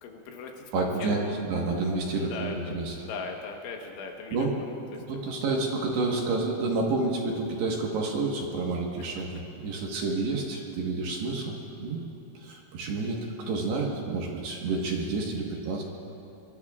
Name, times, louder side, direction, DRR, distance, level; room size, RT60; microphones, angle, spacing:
voice 1, 0.0-1.4 2.3-2.8 3.0-5.7, left 4 dB, 75° left, 2 dB, 3.4 m, -40 dB
voice 2, 0.7-3.0 4.3-4.5 4.9-12.0 12.3-15.8, right 3 dB, 65° right, -1 dB, 3.1 m, -29 dB
24.5 x 24.0 x 2.4 m, 2.9 s
omnidirectional pair, 5.8 m